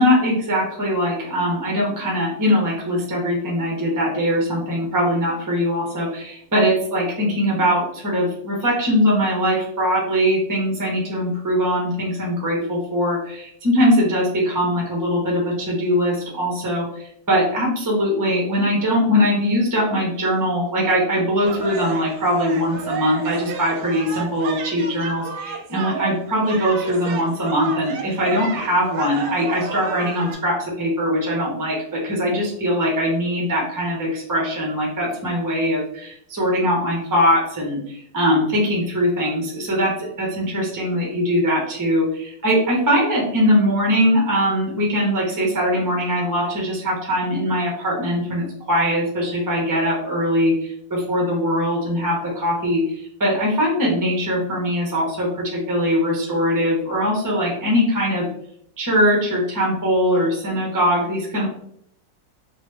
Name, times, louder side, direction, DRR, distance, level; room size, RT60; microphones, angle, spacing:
voice 1, 0.0-58.2 58.8-61.5, equal, 20° right, -3 dB, 0.6 m, -21 dB
sound 1, 21.5-30.3, right 5 dB, 75° right, 1.1 m, -32 dB
3.1 x 2.8 x 3.2 m, 0.68 s
omnidirectional pair, 1.9 m